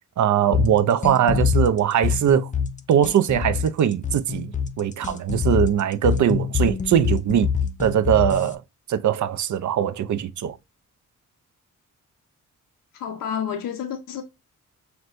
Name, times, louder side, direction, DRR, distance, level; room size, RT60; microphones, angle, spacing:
voice 1, 0.2-2.5 2.9-7.5 7.8-8.6 8.9-10.6, right 9 dB, 60° right, 0.5 m, -21 dB
sound 1, 0.5-8.5, left 7 dB, 25° left, 0.5 m, -25 dB
voice 2, 12.9-14.2, left 8 dB, 80° left, 0.6 m, -30 dB
5.8 x 2.2 x 2.4 m
cardioid pair, 70°, 33 cm